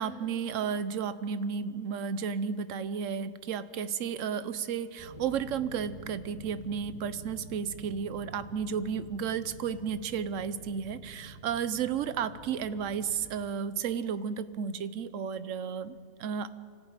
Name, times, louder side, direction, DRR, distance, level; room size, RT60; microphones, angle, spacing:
voice 1, 0.0-15.9 16.2-16.5, right 7 dB, 65° right, 13 dB, 1.1 m, -33 dB
sound 1, 5.0-13.2, right 2 dB, 30° right, 2.5 m, -48 dB
25.5 x 14.0 x 8.9 m, 2.3 s
omnidirectional pair, 1.5 m